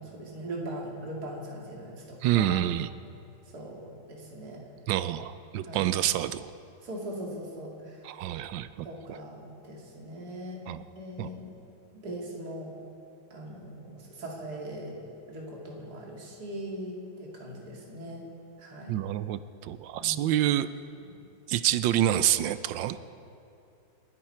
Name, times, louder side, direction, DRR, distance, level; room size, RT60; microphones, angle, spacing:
voice 1, 0.0-2.5 3.5-4.6 5.6-5.9 6.8-8.0 8.8-10.6 11.0-11.5 11.9-12.7 13.3-18.2 18.6-19.0 20.0-20.4, right 1 dB, 50° right, -2 dB, 2.9 m, -40 dB
voice 2, 2.2-2.9 4.9-6.5 8.0-9.2 10.7-10.8 11.2-11.3 18.9-20.7 21.5-23.0, right 12 dB, 75° right, 13 dB, 1.2 m, -27 dB
29.5 x 10.5 x 4.4 m, 2.8 s
omnidirectional pair, 2.2 m